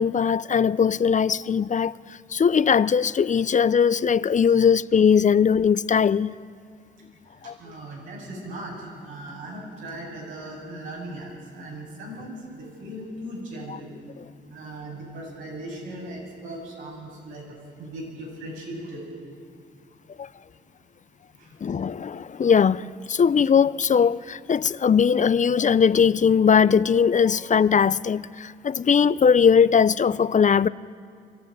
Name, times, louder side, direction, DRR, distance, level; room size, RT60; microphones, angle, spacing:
voice 1, 0.0-2.0 2.3-6.3 7.4-7.5 13.7-13.8 20.2-20.3 21.6-30.7, left 7 dB, 40° left, 0.6 m, -20 dB
voice 2, 7.4-13.9 14.5-17.5 17.8-19.0 21.4-21.5, right 1 dB, 90° right, 7.8 m, -38 dB
23.5 x 15.0 x 9.5 m
supercardioid pair, 55°, 20 cm